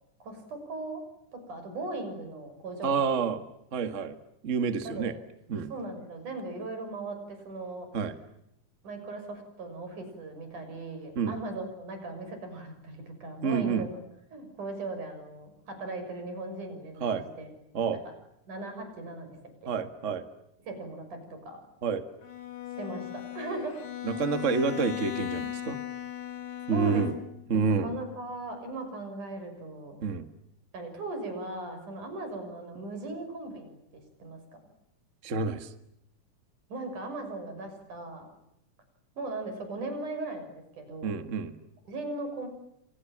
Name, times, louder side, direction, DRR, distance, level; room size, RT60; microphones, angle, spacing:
voice 1, 0.2-1.0 1.3-3.2 4.8-5.1 5.7-7.9 8.8-14.0 14.3-17.1 17.4-17.5 18.5-19.4 20.7-21.6 22.8-23.8 26.7-27.1 27.5-30.0 30.7-33.8 34.2-34.6 36.7-38.3 39.2-41.2 41.9-42.5, right 2 dB, 85° right, 6 dB, 7.8 m, -38 dB
voice 2, 2.8-3.4 3.7-4.2 4.4-5.1 5.5-5.7 7.9-8.1 11.1-11.4 13.4-13.9 17.0-17.2 17.7-18.0 19.7-20.2 21.8-22.0 24.0-25.8 26.7-27.1 27.5-28.0 30.0-30.3 35.2-35.7 41.0-41.5, right 5 dB, 30° right, 10 dB, 1.6 m, -28 dB
Bowed string instrument, 22.2-27.5, left 12 dB, 75° left, 3.7 m, -37 dB
30.0 x 26.5 x 7.5 m, 0.79 s
omnidirectional pair, 3.5 m